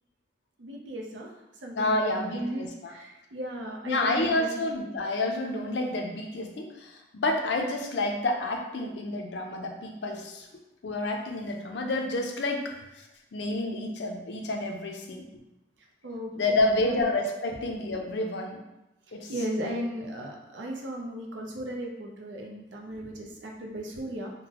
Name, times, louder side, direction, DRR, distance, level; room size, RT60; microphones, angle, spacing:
voice 1, 0.6-1.3 1.6-4.5 16.0-17.0 19.1-24.3, right 1 dB, 85° right, 0 dB, 0.6 m, -36 dB
voice 2, 1.8-2.9 3.9-10.5 10.8-13.0 13.3-15.3 16.4-18.6 19.1-19.3 19.6-19.8, left 2 dB, 70° left, 2 dB, 0.5 m, -29 dB
3.7 x 2.1 x 2.9 m, 0.94 s
head